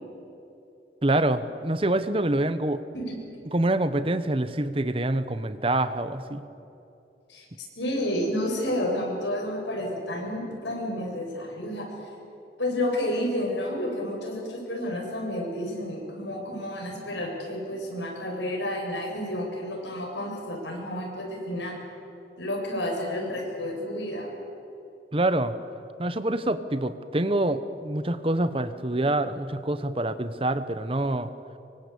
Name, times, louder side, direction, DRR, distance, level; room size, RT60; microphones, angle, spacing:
voice 1, 1.0-2.8 3.5-6.4 25.1-25.5 26.0-31.3, right 1 dB, 30° right, 12 dB, 1.0 m, -26 dB
voice 2, 7.3-11.9 12.6-21.8 22.4-24.3, left 1 dB, 90° left, 0 dB, 7.5 m, -30 dB
25.5 x 24.5 x 8.4 m, 2.8 s
head